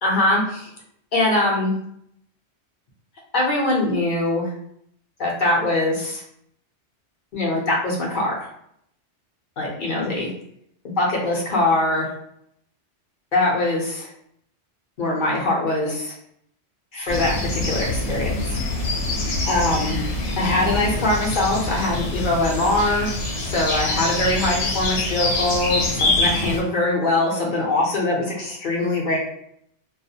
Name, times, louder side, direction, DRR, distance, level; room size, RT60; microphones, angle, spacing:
voice 1, 0.0-0.7 1.1-1.7 3.3-4.5 5.2-6.2 7.3-8.5 9.6-10.3 11.0-12.1 13.3-14.1 15.0-16.1 16.9-18.6 19.5-20.0 20.4-23.1 23.4-29.2, left 2 dB, 50° left, -3 dB, 0.7 m, -22 dB
sound 1, 17.1-26.6, left 2 dB, 80° left, 0.9 m, -25 dB
2.3 x 2.1 x 2.6 m, 0.71 s
omnidirectional pair, 1.2 m